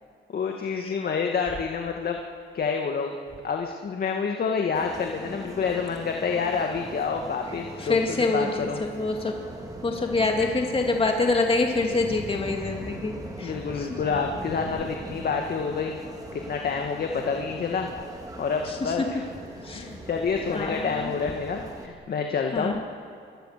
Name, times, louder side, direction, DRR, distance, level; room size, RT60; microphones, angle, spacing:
voice 1, 0.3-2.2 2.5-3.1 3.4-8.8 13.4-16.0 16.3-17.9 18.4-19.2 19.8-22.8, left 5 dB, 50° left, 3 dB, 1.9 m, -28 dB
sound 1, 4.7-21.9, right 1 dB, 20° right, 3.3 m, -40 dB
voice 2, 7.8-9.3 9.8-13.9 18.6-19.0 19.6-19.9 20.5-21.1 22.5-22.8, left 3 dB, 30° left, 1 dB, 2.6 m, -26 dB
28.0 x 23.0 x 6.8 m, 2.3 s
cardioid pair, 90°, 20 cm